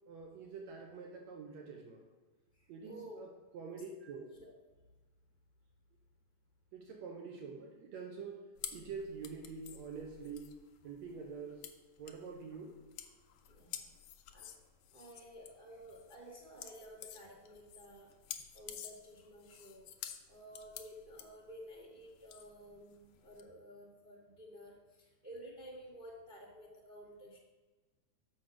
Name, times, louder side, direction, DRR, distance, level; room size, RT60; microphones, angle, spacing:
voice 1, 0.1-2.1 2.7-3.3 3.5-4.3 6.7-10.5 10.8-11.6 12.0-12.8, right 5 dB, 75° right, 1 dB, 2.1 m, -46 dB
voice 2, 2.8-3.2 4.4-4.5 13.5-13.9 14.3-14.5 14.9-18.1 18.5-19.9 20.3-27.4, equal, 45° right, -3 dB, 0.6 m, -53 dB
sound 1, 8.6-23.4, left 10 dB, 75° left, 1.6 m, -50 dB
6.4 x 6.3 x 6.1 m, 1.2 s
omnidirectional pair, 3.4 m